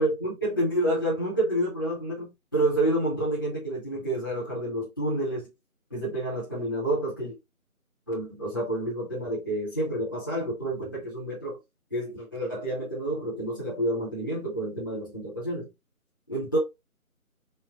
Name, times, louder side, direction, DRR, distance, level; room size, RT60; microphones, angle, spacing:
voice 1, 0.0-5.4 5.9-7.4 8.1-11.6 11.9-15.7 16.3-16.6, right 1 dB, 15° left, 0.8 m, -29 dB
3.2 x 2.2 x 3.6 m
figure-of-eight pair, 160°, 43 cm